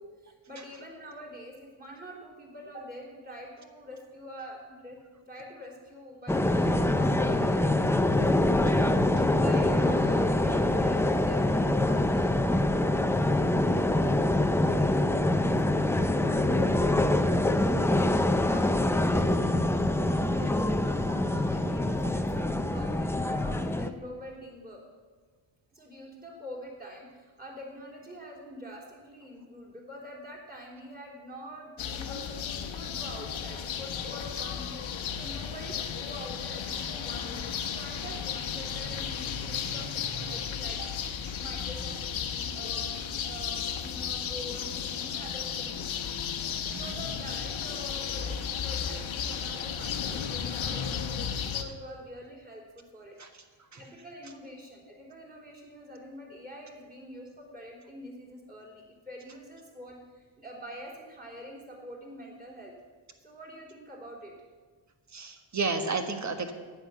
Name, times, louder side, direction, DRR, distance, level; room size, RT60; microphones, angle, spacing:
voice 1, 0.0-5.0 5.3-8.3 9.4-19.7 20.1-24.8 25.7-34.7 35.2-41.1 41.4-45.8 46.5-53.2 53.7-62.7 63.2-64.3, equal, 20° right, -3 dB, 3.6 m, -45 dB
sound 1, 6.3-23.9, left 1 dB, 5° left, 0.5 m, -25 dB
sound 2, 31.8-51.6, left 7 dB, 80° left, 1.2 m, -34 dB
voice 2, 46.4-46.9 53.2-53.8 65.1-66.5, right 4 dB, 35° right, 6 dB, 1.4 m, -34 dB
10.5 x 9.6 x 8.0 m, 1.5 s
wide cardioid pair, 135°, 47 cm